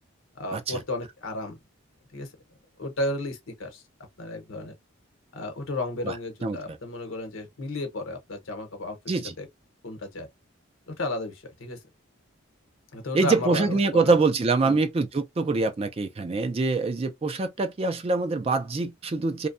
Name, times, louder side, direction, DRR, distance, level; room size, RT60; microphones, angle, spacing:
voice 1, 0.3-1.6 2.1-2.3 2.8-3.8 4.2-4.7 5.3-9.0 9.4-9.5 9.8-10.3 10.9-11.8 12.9-14.1 14.6-14.8, left 1 dB, 75° left, 0.9 m, -33 dB
voice 2, 13.1-19.5, right 3 dB, 30° right, 0.3 m, -24 dB
2.6 x 2.1 x 2.5 m
head